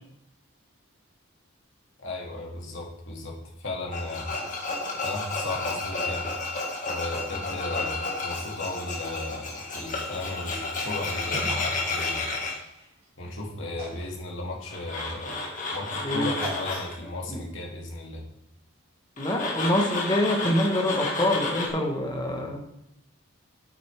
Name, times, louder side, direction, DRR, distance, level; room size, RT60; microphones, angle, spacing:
voice 1, 2.0-4.3 5.0-6.4 6.9-12.3 13.2-15.4 15.7-18.2, left 2 dB, 65° left, -2 dB, 2.2 m, -35 dB
Tools, 3.9-12.5 14.7-16.9 19.2-21.7, left 3 dB, 40° left, 1.9 m, -31 dB
sound 1, 11.3-13.3 13.7-14.2 14.5-17.1, right 1 dB, 25° right, 3.2 m, -41 dB
voice 2, 19.2-22.6, left 1 dB, 20° left, 2 dB, 1.3 m, -25 dB
9.0 x 8.9 x 3.5 m, 0.81 s
head